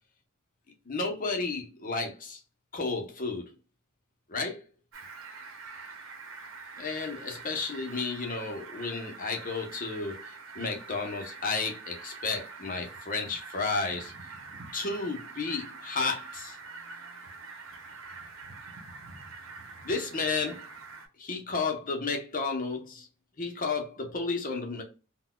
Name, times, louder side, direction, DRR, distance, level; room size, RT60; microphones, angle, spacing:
voice 1, 0.9-2.4 2.7-3.5 4.3-4.6 6.8-14.1 14.7-16.6 19.8-20.7 21.2-23.1 23.4-24.8, left 4 dB, 45° left, 0.8 m, -32 dB
Fowl, 4.9-21.1, right 4 dB, 85° right, 0.8 m, -45 dB
3.9 x 2.2 x 2.2 m
head